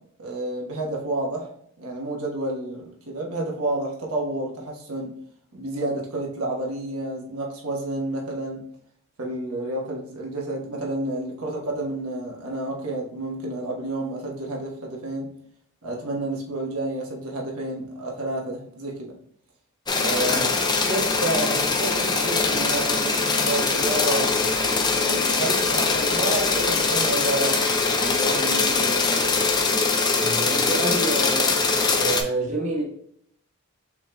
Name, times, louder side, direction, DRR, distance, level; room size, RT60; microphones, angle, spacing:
voice 1, 0.2-1.5 1.8-5.1 5.5-8.6 9.2-15.3 15.8-19.1 20.0-20.4 20.9-24.3 24.9-29.2, right 2 dB, 80° right, 1.2 m, -30 dB
sound 1, 19.9-32.2, left 4 dB, 20° left, 0.4 m, -22 dB
voice 2, 20.2-20.5 30.2-31.6 32.0-32.8, right 2 dB, 30° right, 1.1 m, -28 dB
6.0 x 3.7 x 2.2 m
head